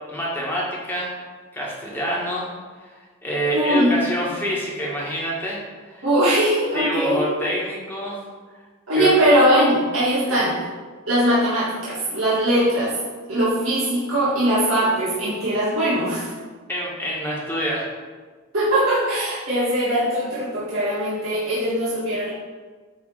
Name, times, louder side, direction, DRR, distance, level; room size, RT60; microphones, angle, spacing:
voice 1, 0.1-1.1 1.5-2.5 2.8-6.1 6.7-8.2 8.9-9.1 10.2-10.5 16.7-17.9, equal, 10° left, -5 dB, 1.7 m, -27 dB
voice 2, 3.5-3.9 6.0-7.2 8.9-10.6 11.1-13.0 13.3-16.3 18.5-22.3, right 1 dB, 70° right, -10 dB, 2.1 m, -20 dB
9.3 x 3.5 x 5.0 m, 1.4 s
head